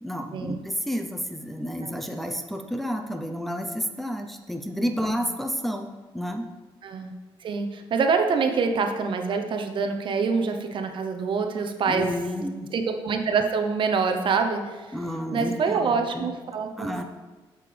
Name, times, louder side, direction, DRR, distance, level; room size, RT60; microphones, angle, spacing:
voice 1, 0.0-6.5 11.9-12.7 14.9-16.3 16.8-17.0, equal, ahead, 4 dB, 0.7 m, -30 dB
voice 2, 6.8-7.1 7.4-12.2 12.7-15.0 15.3-17.0, right 5 dB, 60° right, 5 dB, 0.9 m, -25 dB
8.3 x 6.9 x 3.4 m, 1.3 s
cardioid pair, 85°, 10 cm